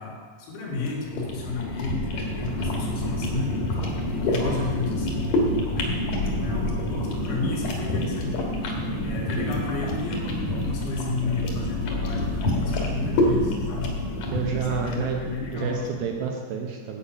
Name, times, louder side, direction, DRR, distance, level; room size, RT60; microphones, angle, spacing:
voice 1, 0.0-3.6 4.1-5.3 5.7-6.0 6.2-8.4 9.0-13.9 14.5-15.7, left 4 dB, 90° left, -2 dB, 4.2 m, -32 dB
sound 1, 0.8-16.0, left 1 dB, 55° left, 2.1 m, -27 dB
voice 2, 9.1-9.5 14.3-15.2 15.5-17.0, right 6 dB, 75° right, 1 dB, 2.3 m, -29 dB
9.4 x 8.4 x 5.6 m, 1.5 s
omnidirectional pair, 5.1 m